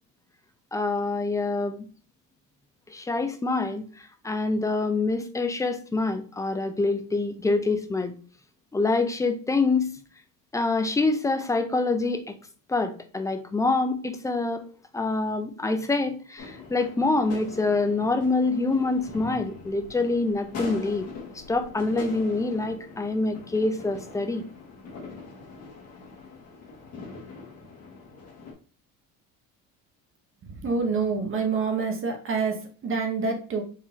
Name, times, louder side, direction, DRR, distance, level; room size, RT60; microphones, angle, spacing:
voice 1, 0.7-1.9 2.9-8.1 8.7-9.9 10.5-12.4 12.7-14.7 14.9-21.1 21.3-24.4, left 3 dB, 10° left, 8 dB, 0.5 m, -26 dB
sound 1, 16.4-28.5, left 3 dB, 45° left, 1.8 m, -42 dB
voice 2, 30.5-33.6, right 4 dB, 35° right, 3 dB, 1.0 m, -27 dB
4.6 x 3.7 x 2.9 m, 0.41 s
cardioid pair, 120°, 35 cm